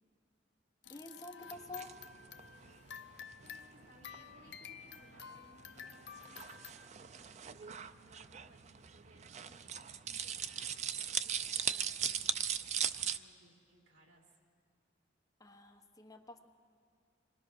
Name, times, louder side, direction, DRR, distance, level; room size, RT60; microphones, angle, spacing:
sound 1, 0.8-6.7, left 8 dB, 65° left, 0.7 m, -51 dB
voice 1, 0.9-1.9 15.4-16.4, left 2 dB, 20° left, 3 dB, 1.1 m, -49 dB
sound 2, 1.5-13.2, right 9 dB, 35° right, 0.5 m, -40 dB
voice 2, 3.4-6.3 7.0-12.4 13.1-14.4, right 1 dB, 80° right, 0 dB, 3.4 m, -64 dB
26.0 x 20.5 x 6.3 m, 2.3 s
head